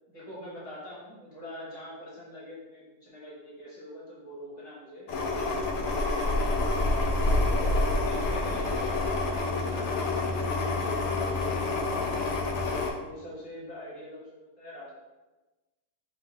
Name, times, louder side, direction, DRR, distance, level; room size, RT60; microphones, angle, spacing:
voice 1, 0.1-6.2 7.2-12.4 12.9-14.9, equal, 55° left, -7 dB, 1.8 m, -45 dB
sound 1, 5.1-12.9, left 2 dB, 75° left, 1.0 m, -27 dB
4.0 x 2.7 x 3.8 m, 1.1 s
omnidirectional pair, 1.4 m